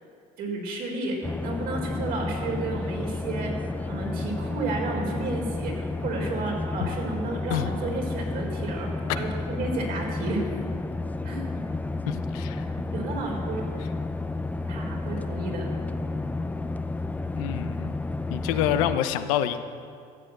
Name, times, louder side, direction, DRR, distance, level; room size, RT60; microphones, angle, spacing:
voice 1, 0.4-10.5 11.2-11.6 12.7-13.7 14.7-15.7, right 2 dB, 60° right, 0 dB, 3.9 m, -32 dB
sound 1, 1.2-19.0, left 2 dB, 10° left, 0.6 m, -31 dB
voice 2, 12.1-12.7 17.4-17.9 18.3-19.6, left 11 dB, 90° left, 10 dB, 0.8 m, -27 dB
14.0 x 8.4 x 7.9 m, 2.3 s
supercardioid pair, 100°, 17 cm